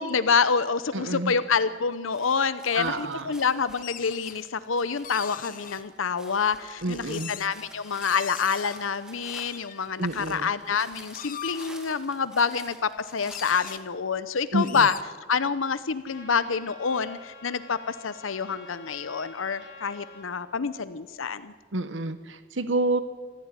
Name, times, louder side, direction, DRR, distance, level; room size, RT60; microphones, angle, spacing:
voice 1, 0.0-12.8 13.1-14.9 15.3-21.5, left 5 dB, 90° left, 14 dB, 0.8 m, -27 dB
voice 2, 0.9-1.3 2.7-3.4 6.8-7.3 10.0-10.5 14.5-14.9 21.7-23.0, right 2 dB, 70° right, 11 dB, 1.2 m, -28 dB
sound 1, 2.1-13.8, equal, 5° right, 2.4 m, -50 dB
sound 2, 2.7-2.9 3.7-4.4 5.0-5.8 6.5-7.6 8.0-8.8 9.2-10.4 10.9-11.7 12.7-12.8 13.0-13.1 13.3-13.8 14.6-15.0, left 10 dB, 45° left, 1.0 m, -40 dB
Trumpet, 16.0-20.3, left 3 dB, 60° left, 7.5 m, -48 dB
26.0 x 15.5 x 9.8 m, 1.5 s
head